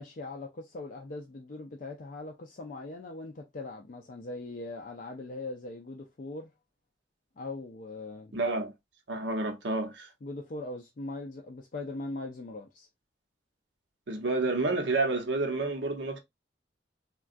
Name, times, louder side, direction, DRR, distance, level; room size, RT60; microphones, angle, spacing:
voice 1, 0.0-6.5 7.4-8.3 10.2-12.9, left 2 dB, 45° left, 0.4 m, -40 dB
voice 2, 8.3-8.7 9.1-10.1 14.1-16.2, right 3 dB, 75° right, 0.8 m, -29 dB
3.6 x 2.2 x 2.4 m
head